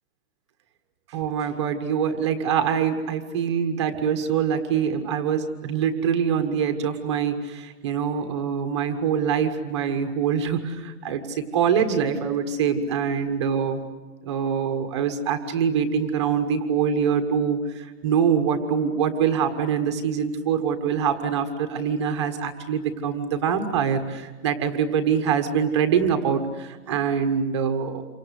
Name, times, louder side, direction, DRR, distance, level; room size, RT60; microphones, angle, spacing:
voice 1, 1.1-13.8 14.2-28.0, right 7 dB, 20° right, 7 dB, 1.2 m, -24 dB
28.5 x 24.5 x 8.2 m, 1.3 s
hypercardioid pair, 175°, 44 cm